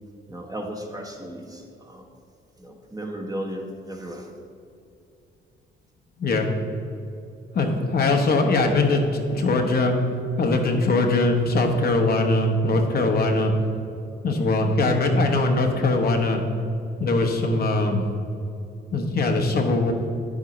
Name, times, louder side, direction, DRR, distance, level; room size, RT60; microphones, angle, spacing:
voice 1, 0.3-1.6 1.9-2.1 2.6-4.2, right 1 dB, 20° right, 2 dB, 1.0 m, -34 dB
voice 2, 7.5-9.9 10.4-13.5 14.2-16.4 17.0-18.0 18.9-19.9, left 2 dB, 50° left, 3 dB, 0.9 m, -21 dB
9.2 x 7.3 x 3.0 m, 2.6 s
cardioid pair, 90°, 20 cm